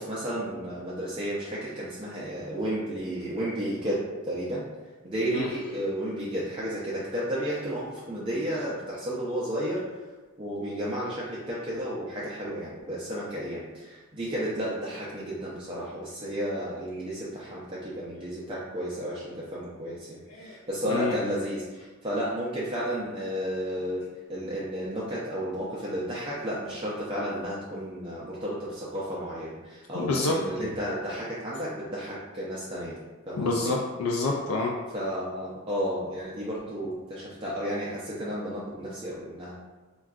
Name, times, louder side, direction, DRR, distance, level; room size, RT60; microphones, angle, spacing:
voice 1, 0.0-4.6 5.0-9.8 10.4-24.0 24.3-33.0 33.3-33.7 34.9-39.5, equal, 25° right, -7 dB, 0.4 m, -32 dB
voice 2, 20.9-21.2 29.9-30.4 33.4-34.7, left 3 dB, 75° left, 0 dB, 0.3 m, -27 dB
3.6 x 2.3 x 2.3 m, 1.3 s
head